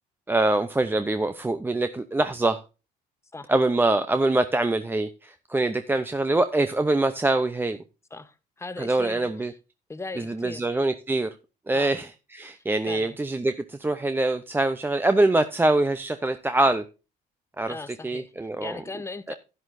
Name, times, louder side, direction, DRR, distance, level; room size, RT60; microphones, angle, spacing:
voice 1, 0.3-2.6 3.5-7.8 8.8-9.5 10.2-11.3 11.7-16.9 17.6-17.8 18.0-18.8 19.3-19.4, right 2 dB, 10° right, 0.7 m, -24 dB
voice 2, 8.1-9.3 9.9-10.7 11.7-11.9 12.5-13.2 17.7-18.3 18.6-19.4, left 3 dB, 15° left, 1.0 m, -38 dB
11.5 x 11.0 x 2.6 m
cardioid pair, 110°, 17 cm